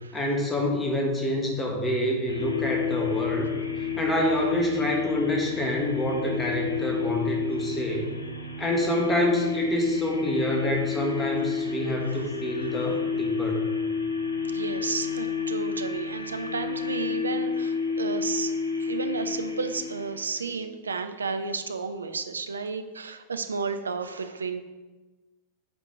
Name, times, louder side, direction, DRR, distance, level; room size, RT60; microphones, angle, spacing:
voice 1, 0.1-3.5 4.0-8.1 8.6-13.7, left 1 dB, 15° left, 0 dB, 1.4 m, -27 dB
sound 1, 2.3-20.6, left 6 dB, 80° left, 0.6 m, -30 dB
voice 2, 14.5-18.5 18.8-24.6, right 4 dB, 75° right, 8 dB, 0.5 m, -32 dB
7.6 x 4.5 x 3.7 m, 1.2 s
figure-of-eight pair, 90°, 0 cm